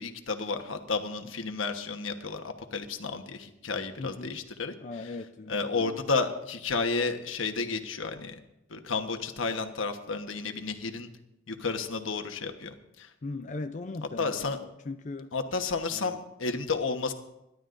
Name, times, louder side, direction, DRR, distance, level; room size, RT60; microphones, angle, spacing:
voice 1, 0.0-4.7 5.5-8.4 8.7-11.1 11.5-13.1 14.2-14.6 15.3-17.1, left 4 dB, 85° left, 6 dB, 1.2 m, -32 dB
voice 2, 4.0-4.4 4.8-6.0 13.2-15.3 15.9-16.2, left 3 dB, 40° left, 7 dB, 0.5 m, -39 dB
27.0 x 12.0 x 2.6 m, 0.89 s
head